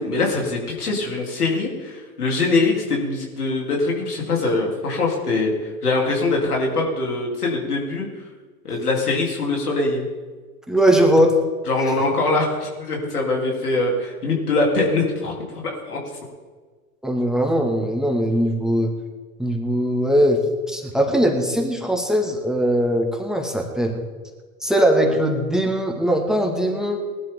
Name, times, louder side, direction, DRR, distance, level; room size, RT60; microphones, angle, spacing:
voice 1, 0.0-8.1 8.6-10.1 11.7-15.3 15.6-16.0, left 3 dB, 85° left, -2 dB, 3.8 m, -23 dB
voice 2, 10.7-11.4 17.0-18.9 19.4-24.0 24.6-27.0, equal, ahead, 2 dB, 2.2 m, -20 dB
19.5 x 12.0 x 3.9 m, 1.4 s
hypercardioid pair, 85°, 44 cm